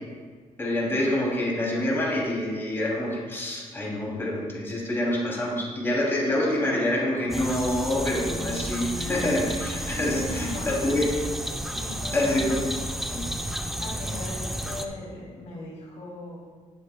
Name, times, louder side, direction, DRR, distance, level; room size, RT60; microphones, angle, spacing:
voice 1, 0.6-11.1 12.1-12.6 13.1-13.3, left 1 dB, 20° left, -4 dB, 2.9 m, -26 dB
sound 1, 7.3-14.9, equal, ahead, 0.7 m, -32 dB
voice 2, 10.0-10.8 11.7-12.7 13.8-16.4, left 2 dB, 65° left, -3 dB, 2.9 m, -37 dB
19.5 x 8.2 x 2.3 m, 1.5 s
cardioid pair, 140°, 13 cm